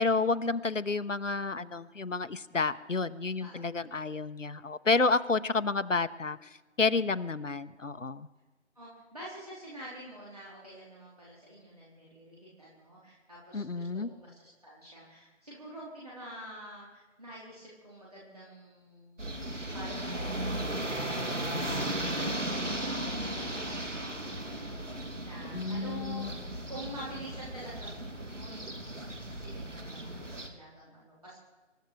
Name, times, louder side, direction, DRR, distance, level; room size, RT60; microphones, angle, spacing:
voice 1, 0.0-6.5 6.8-8.3 13.5-14.1 25.5-26.3, left 3 dB, 85° left, 12 dB, 1.0 m, -30 dB
voice 2, 3.4-4.2 8.8-19.4 19.7-24.7 25.2-29.0 29.3-31.4, right 1 dB, 30° right, -8 dB, 3.6 m, -47 dB
sound 1, 19.2-30.5, right 1 dB, 80° right, 2.6 m, -36 dB
27.0 x 14.0 x 3.3 m, 1.2 s
figure-of-eight pair, 175°, 37 cm